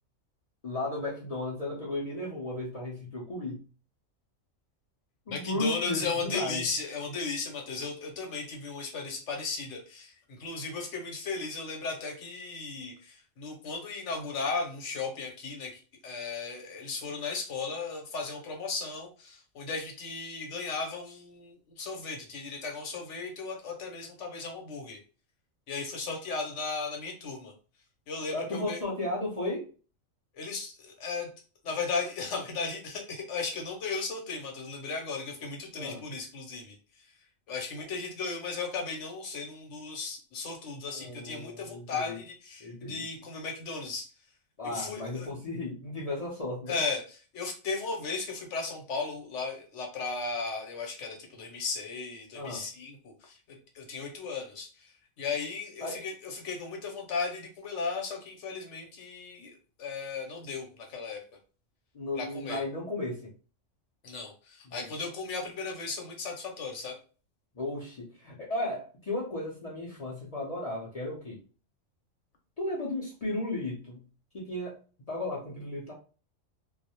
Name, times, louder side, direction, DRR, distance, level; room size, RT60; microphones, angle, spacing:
voice 1, 0.6-3.6 5.3-6.6 28.3-29.7 35.7-36.0 40.9-42.2 42.6-43.0 44.6-46.8 52.3-52.6 55.8-56.0 61.9-63.2 64.7-64.9 67.5-71.4 72.6-74.0 74.3-74.8 75.1-75.9, left 2 dB, 55° left, -5 dB, 0.4 m, -35 dB
voice 2, 5.3-10.1 10.4-25.0 25.7-27.5 28.1-28.8 30.3-31.3 31.6-36.7 37.5-44.1 44.6-45.3 46.7-54.9 55.2-61.2 62.1-62.6 64.0-66.9, left 4 dB, 70° left, 2 dB, 1.0 m, -36 dB
2.3 x 2.0 x 2.8 m, 0.36 s
omnidirectional pair, 1.4 m